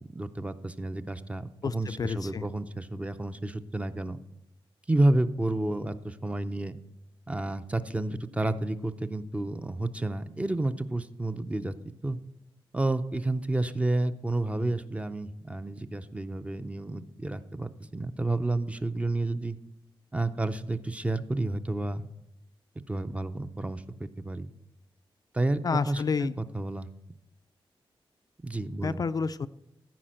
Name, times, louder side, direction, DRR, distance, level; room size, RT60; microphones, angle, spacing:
voice 1, 0.1-4.2 4.9-6.8 7.3-11.7 12.0-12.2 12.7-19.6 20.1-22.1 22.9-24.5 25.3-26.9 28.4-29.0, right 2 dB, 15° right, 10 dB, 0.5 m, -30 dB
voice 2, 1.6-2.4 25.6-26.4 28.8-29.5, left 5 dB, 45° left, 12 dB, 0.4 m, -30 dB
14.0 x 5.0 x 7.6 m, 0.83 s
wide cardioid pair, 145°, 9 cm